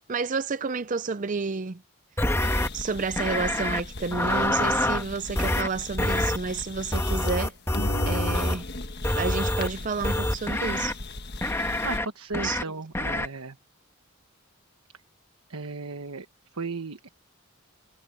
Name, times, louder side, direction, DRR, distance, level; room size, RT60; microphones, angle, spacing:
voice 1, 0.1-1.8 2.7-7.5 8.0-8.7 9.2-11.0 12.4-12.6, right 4 dB, 35° right, 0.5 m, -30 dB
sound 1, 2.2-2.7 3.2-3.8 4.1-5.0 5.4-5.7 6.0-6.4 6.9-8.6 9.0-9.7 10.0-10.9 11.4-12.1 12.3-12.6 13.0-13.3, left 1 dB, 10° left, 1.4 m, -26 dB
sound 2, 2.4-7.5 7.7-12.0, left 2 dB, 50° left, 1.5 m, -37 dB
voice 2, 11.8-13.6 15.5-16.3 16.5-17.1, right 3 dB, 85° right, 1.3 m, -35 dB
head